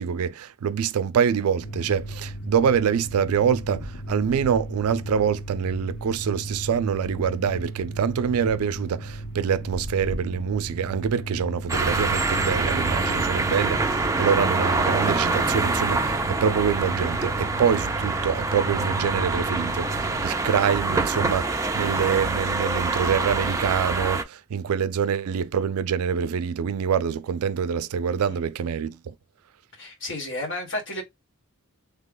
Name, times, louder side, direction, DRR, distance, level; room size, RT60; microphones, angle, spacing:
voice 1, 0.0-29.1, right 7 dB, 90° right, 0.4 m, -25 dB
sound 1, 1.6-20.2, right 1 dB, 80° left, 1.4 m, -36 dB
sound 2, 11.7-24.2, right 3 dB, 15° right, 0.4 m, -25 dB
voice 2, 29.8-31.0, left 1 dB, 60° left, 1.7 m, -32 dB
3.3 x 2.2 x 3.7 m
head